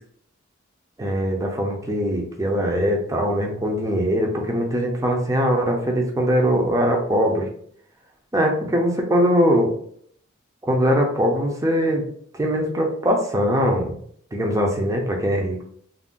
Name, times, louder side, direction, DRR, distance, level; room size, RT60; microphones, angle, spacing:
voice 1, 1.0-7.5 8.3-9.7 10.6-12.0 12.4-14.0 14.3-15.6, equal, 15° right, 1 dB, 0.5 m, -21 dB
2.5 x 2.0 x 3.6 m, 0.63 s
head